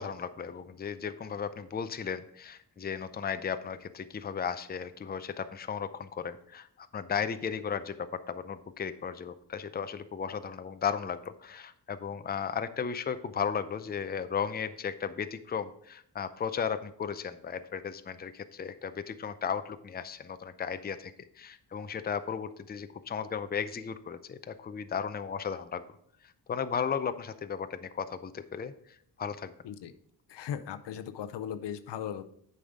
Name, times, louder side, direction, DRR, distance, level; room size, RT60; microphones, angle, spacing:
voice 1, 0.0-21.1 21.4-25.8 26.5-28.7 29.2-29.5, left 7 dB, 25° left, 11 dB, 0.5 m, -35 dB
voice 2, 30.3-32.2, left 9 dB, 85° left, 11 dB, 0.6 m, -37 dB
8.4 x 5.6 x 3.6 m, 0.65 s
cardioid pair, 85°, 41 cm